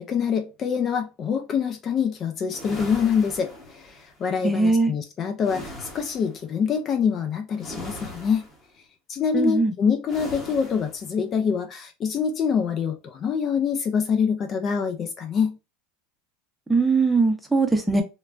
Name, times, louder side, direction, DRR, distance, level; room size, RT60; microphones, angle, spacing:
voice 1, 0.0-8.5 9.1-15.6, left 6 dB, 35° left, 0.5 m, -25 dB
sound 1, 2.5-4.1 5.4-6.4 7.6-8.7 10.1-11.0, left 1 dB, 20° left, 1.1 m, -39 dB
voice 2, 4.4-4.9 9.3-9.7 16.7-18.0, right 3 dB, 5° right, 0.7 m, -20 dB
3.1 x 2.2 x 2.5 m
supercardioid pair, 105°, 0 cm